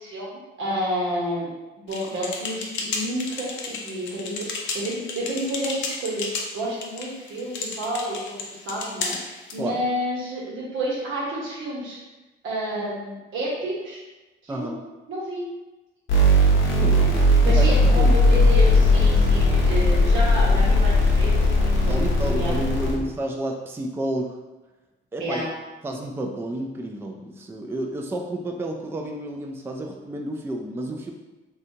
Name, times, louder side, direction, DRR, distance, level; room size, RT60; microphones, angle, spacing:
voice 1, 0.0-1.5 1.8-12.0 12.4-14.0 14.4-14.8 15.1-15.5 16.3-17.1 17.4-21.4 21.6-22.9 25.2-25.5, right 1 dB, 80° right, -4 dB, 1.1 m, -30 dB
sound 1, 1.9-9.6, left 4 dB, 70° left, 0.6 m, -33 dB
sound 2, 16.1-22.9, left 1 dB, 90° left, 1.0 m, -18 dB
voice 2, 21.9-24.4 25.1-25.5 25.8-31.1, right 1 dB, 10° right, 1 dB, 0.4 m, -30 dB
3.3 x 2.7 x 2.8 m, 1.1 s
cardioid pair, 90°, 20 cm